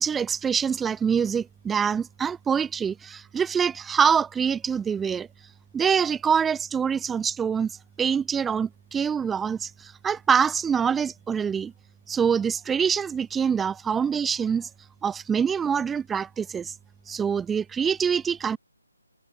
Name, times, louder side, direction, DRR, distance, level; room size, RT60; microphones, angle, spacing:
voice 1, 0.0-5.3 5.7-7.7 8.0-11.7 12.1-14.7 15.0-16.7 17.1-18.6, right 7 dB, 5° right, 1.5 m, -25 dB
figure-of-eight pair, 150°, 0 cm